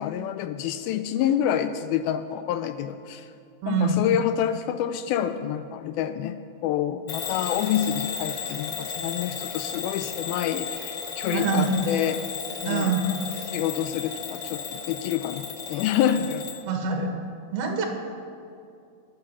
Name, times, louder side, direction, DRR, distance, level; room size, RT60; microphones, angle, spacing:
voice 1, 0.0-3.3 3.7-12.2 12.6-13.0 13.5-16.5, left 10 dB, 80° left, 10 dB, 2.3 m, -27 dB
voice 2, 3.6-4.1 11.3-11.7 12.6-13.0 16.7-17.1 17.5-17.9, right 5 dB, 75° right, 3 dB, 3.4 m, -25 dB
Bell / Alarm, 7.1-16.6, left 6 dB, 65° left, 1.4 m, -34 dB
22.5 x 8.9 x 6.9 m, 2.5 s
omnidirectional pair, 4.5 m